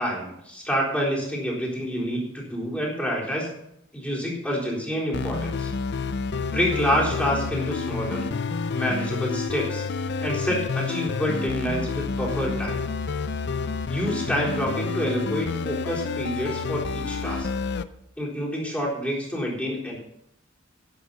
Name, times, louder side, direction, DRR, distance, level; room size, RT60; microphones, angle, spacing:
voice 1, 0.0-3.5 3.9-5.7 6.5-8.3 8.7-9.8 10.2-12.8 13.9-17.5 18.2-20.0, equal, 5° left, -4 dB, 3.9 m, -27 dB
sound 1, 5.1-17.8, left 4 dB, 55° left, 0.5 m, -29 dB
11.5 x 7.9 x 6.7 m, 0.79 s
head